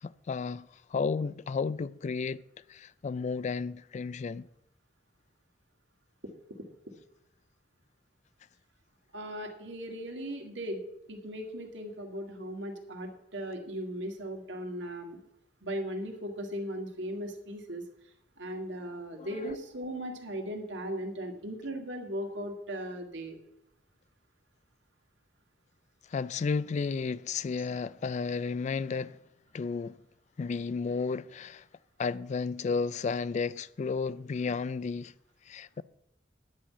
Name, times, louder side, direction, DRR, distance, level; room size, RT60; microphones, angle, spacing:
voice 1, 0.0-2.4 2.7-4.5 19.2-19.3 26.1-29.2 29.5-30.0 30.4-31.7 32.0-35.1 35.5-35.8, left 5 dB, 40° left, 0.3 m, -33 dB
voice 2, 9.1-10.8 11.1-15.2 15.6-17.8 18.4-23.4, equal, 75° right, 2.0 m, -37 dB
10.0 x 5.7 x 8.4 m
head